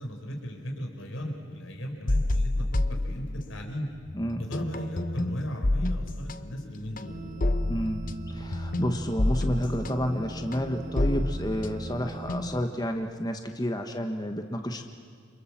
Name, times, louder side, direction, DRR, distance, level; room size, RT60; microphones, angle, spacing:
voice 1, 0.0-3.9 4.4-7.2, equal, 85° left, 3 dB, 4.8 m, -36 dB
sound 1, 2.1-3.8 4.1-12.7, left 1 dB, 45° left, 0.9 m, -29 dB
voice 2, 4.1-4.5 7.7-14.8, equal, 20° left, 5 dB, 1.3 m, -30 dB
sound 2, 7.0-12.7, right 3 dB, 45° right, 1.3 m, -40 dB
29.0 x 27.0 x 7.5 m, 2.1 s
head